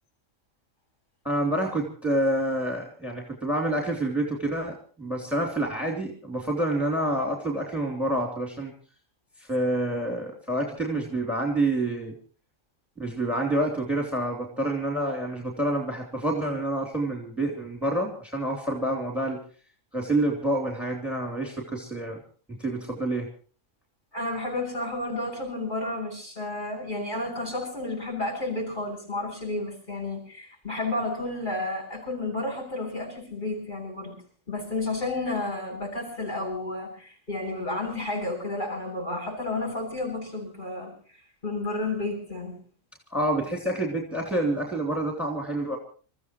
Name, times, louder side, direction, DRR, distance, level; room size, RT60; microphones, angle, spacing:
voice 1, 1.2-8.7 9.4-12.2 13.0-19.4 19.9-22.2 22.5-23.3 43.1-45.8, right 1 dB, ahead, 1 dB, 3.2 m, -28 dB
voice 2, 24.1-34.2 34.5-40.9 41.4-42.6, left 2 dB, 40° left, 0 dB, 8.2 m, -31 dB
29.0 x 15.0 x 3.1 m, 0.41 s
omnidirectional pair, 1.4 m